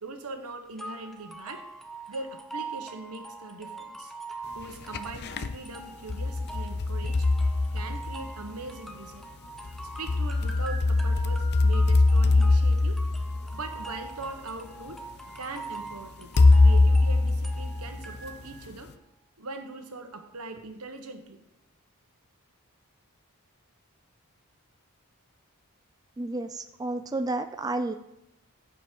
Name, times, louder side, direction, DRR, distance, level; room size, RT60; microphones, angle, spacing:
voice 1, 0.0-1.7 2.1-4.1 4.5-7.3 7.7-9.2 10.0-13.0 13.5-15.0 15.3-18.9 19.4-21.4, right 3 dB, 85° right, 5 dB, 1.3 m, -41 dB
sound 1, 0.8-18.7, right 3 dB, ahead, 0.7 m, -43 dB
sound 2, 4.6-5.6 6.1-8.5 9.7-14.1 14.9-15.0 16.4-18.3, left 3 dB, 50° left, 0.5 m, -22 dB
voice 2, 26.2-27.9, right 2 dB, 15° right, 8 dB, 0.4 m, -31 dB
14.5 x 5.3 x 4.6 m, 0.88 s
head